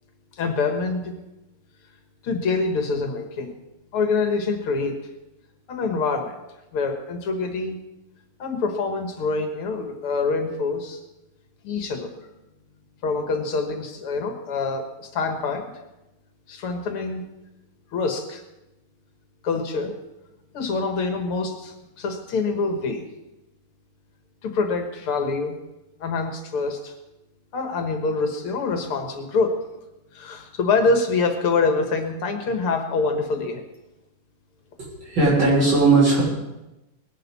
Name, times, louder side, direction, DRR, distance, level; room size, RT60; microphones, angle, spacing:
voice 1, 0.3-1.1 2.2-3.6 3.9-5.0 5.7-6.4 6.7-7.8 8.4-11.0 11.6-12.3 13.0-15.7 16.5-17.2 17.9-18.4 19.4-20.0 20.5-23.0 24.4-25.6 26.0-26.9 27.5-29.6 30.1-33.6, left 4 dB, 80° left, 5 dB, 2.4 m, -25 dB
voice 2, 34.8-36.2, right 3 dB, 60° right, -6 dB, 7.3 m, -18 dB
20.0 x 11.5 x 4.2 m, 0.98 s
omnidirectional pair, 2.4 m